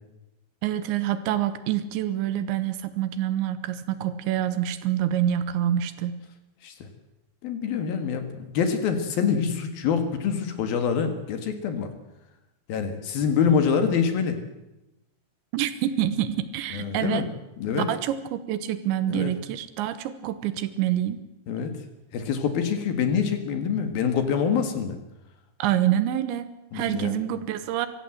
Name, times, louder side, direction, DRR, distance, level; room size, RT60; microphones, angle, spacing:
voice 1, 0.6-6.2 15.5-17.3 17.8-21.2 25.6-27.9, right 11 dB, 85° right, 12 dB, 3.5 m, -26 dB
voice 2, 7.4-11.9 12.7-14.4 16.7-17.3 17.6-17.9 19.1-19.3 21.5-21.7 22.1-25.0 26.7-27.2, left 6 dB, 60° left, 8 dB, 3.3 m, -25 dB
24.5 x 15.0 x 7.9 m, 0.94 s
omnidirectional pair, 5.1 m